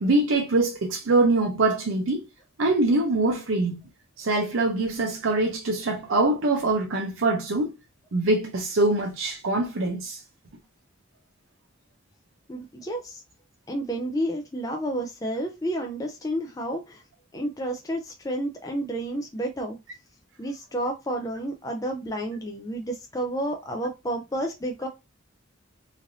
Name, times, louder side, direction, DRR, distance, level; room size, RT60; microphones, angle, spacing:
voice 1, 0.0-2.2 2.6-3.8 4.2-7.7 8.1-10.2, right 2 dB, 85° right, 0.6 m, -23 dB
voice 2, 12.5-13.2 13.7-17.0 17.3-19.8 20.4-24.9, right 1 dB, 20° left, 0.4 m, -30 dB
3.2 x 2.5 x 2.6 m
head